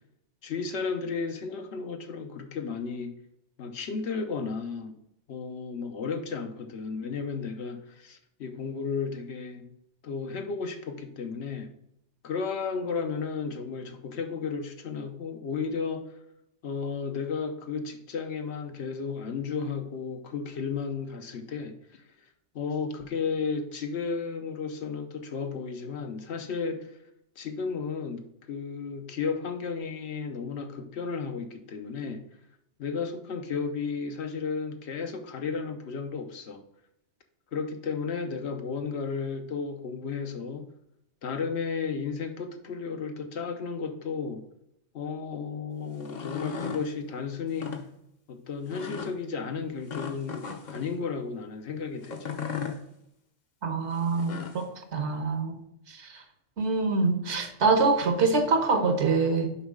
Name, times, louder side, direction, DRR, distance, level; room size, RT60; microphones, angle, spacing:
voice 1, 0.4-3.1 3.6-4.9 5.3-9.7 10.0-11.7 12.2-16.1 16.6-22.0 22.5-27.0 27.4-32.2 32.8-36.6 37.5-40.7 41.2-44.4 44.9-47.7 48.3-52.4, left 5 dB, 70° left, 6 dB, 1.0 m, -33 dB
sound 1, 45.9-46.8 47.5-47.8 48.7-49.1 49.9-50.8 52.0-52.8 54.0-54.6, left 6 dB, 45° left, 0.8 m, -35 dB
voice 2, 53.6-55.6 55.9-56.2 56.6-59.5, right 4 dB, 70° right, 5 dB, 1.2 m, -25 dB
7.0 x 5.3 x 3.6 m, 0.77 s
omnidirectional pair, 1.2 m